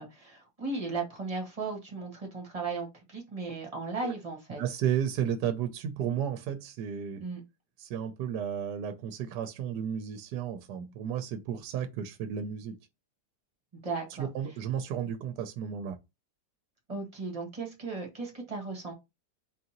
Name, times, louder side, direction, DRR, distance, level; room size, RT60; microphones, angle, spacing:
voice 1, 0.0-4.6 7.2-7.4 13.8-14.3 16.9-18.9, right 4 dB, 20° right, 1.4 m, -36 dB
voice 2, 4.6-7.2 7.8-12.8 14.2-16.0, right 9 dB, 75° right, 1.1 m, -33 dB
4.0 x 3.7 x 2.9 m
omnidirectional pair, 1.9 m